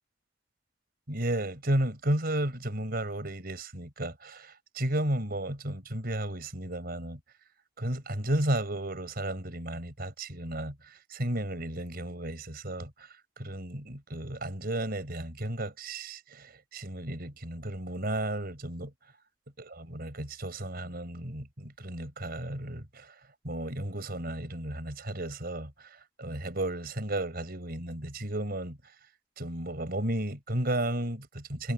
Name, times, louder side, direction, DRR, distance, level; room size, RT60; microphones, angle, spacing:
voice 1, 1.1-7.2 7.8-13.1 13.4-18.9 19.6-23.1 23.4-28.8 29.4-31.7, right 1 dB, 55° right, 4.9 m, -33 dB
head